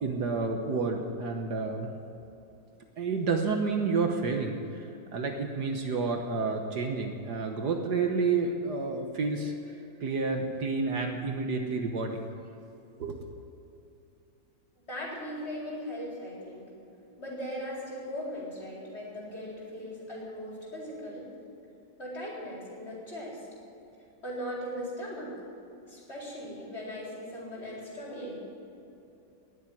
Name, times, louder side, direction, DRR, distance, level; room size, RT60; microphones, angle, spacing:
voice 1, 0.0-1.9 3.0-9.5 10.0-12.3 13.0-13.1, right 4 dB, 60° right, 3 dB, 1.6 m, -30 dB
voice 2, 14.9-16.7 17.2-21.3 22.0-23.4 24.2-25.3 25.9-28.3, equal, 35° left, -5 dB, 4.5 m, -39 dB
19.5 x 7.4 x 9.3 m, 2.8 s
omnidirectional pair, 2.0 m